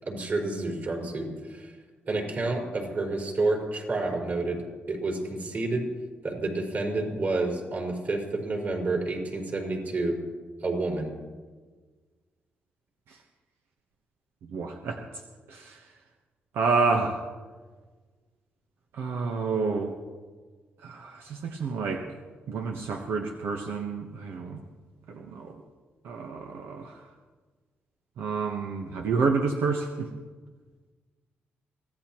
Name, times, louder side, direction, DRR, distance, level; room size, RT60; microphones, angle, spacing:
voice 1, 0.0-1.7 2.1-5.9 6.2-10.2 10.6-11.1, right 2 dB, 50° right, -1 dB, 4.7 m, -29 dB
voice 2, 14.5-15.0 15.5-15.8 16.5-17.2 18.9-19.9 20.8-22.1 22.5-24.6 25.1-25.6 26.0-27.0 28.2-30.1, right 4 dB, 90° right, 3 dB, 1.1 m, -29 dB
24.0 x 16.5 x 3.0 m, 1.4 s
cardioid pair, 105°, 4 cm